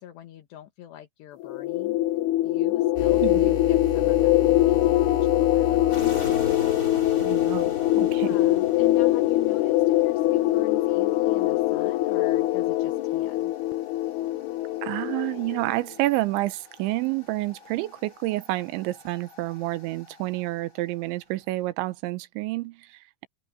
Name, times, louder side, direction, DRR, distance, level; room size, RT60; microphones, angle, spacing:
voice 1, 0.0-2.0 2.4-6.1 7.9-13.5, left 13 dB, 70° left, 3.6 m, -43 dB
sound 1, 1.4-15.8, left 16 dB, 90° left, 2.3 m, -23 dB
sound 2, 2.9-20.7, left 2 dB, 20° left, 4.2 m, -39 dB
voice 2, 3.2-3.5 7.2-8.4 14.8-23.3, right 18 dB, 85° right, 3.2 m, -29 dB
omnidirectional pair, 5.2 m